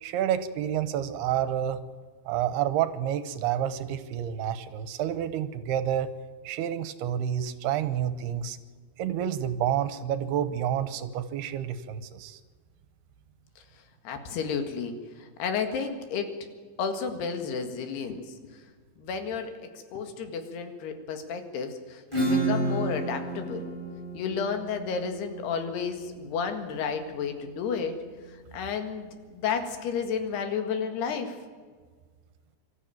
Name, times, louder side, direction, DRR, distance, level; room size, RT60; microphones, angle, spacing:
voice 1, 0.0-1.8 2.3-6.1 6.4-8.6 9.0-12.4, right 10 dB, 80° right, 12 dB, 3.0 m, -29 dB
voice 2, 14.1-16.3 16.8-18.6 19.0-23.7 24.1-28.0 28.3-31.4, left 6 dB, 85° left, 6 dB, 3.9 m, -32 dB
Acoustic guitar / Strum, 22.1-27.5, right 2 dB, 5° left, 6.5 m, -31 dB
23.5 x 13.5 x 9.0 m, 1.5 s
omnidirectional pair, 4.5 m